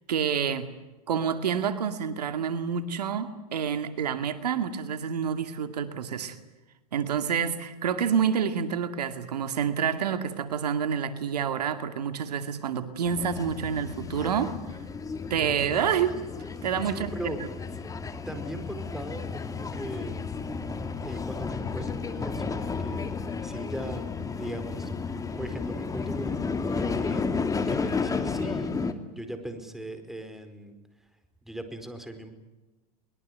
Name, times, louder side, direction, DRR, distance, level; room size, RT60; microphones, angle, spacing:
voice 1, 0.1-0.7 1.1-6.4 6.9-14.5 15.3-16.2 16.6-17.3, right 7 dB, 85° right, 9 dB, 2.3 m, -28 dB
sound 1, 13.0-28.9, left 4 dB, 15° left, 2.5 m, -32 dB
voice 2, 16.8-17.4 18.3-20.2 21.0-23.1 23.4-24.0 24.4-27.3 27.7-30.7 31.4-32.3, right 1 dB, ahead, 8 dB, 4.8 m, -39 dB
23.0 x 22.0 x 9.4 m, 1.1 s
hypercardioid pair, 105°, 20 cm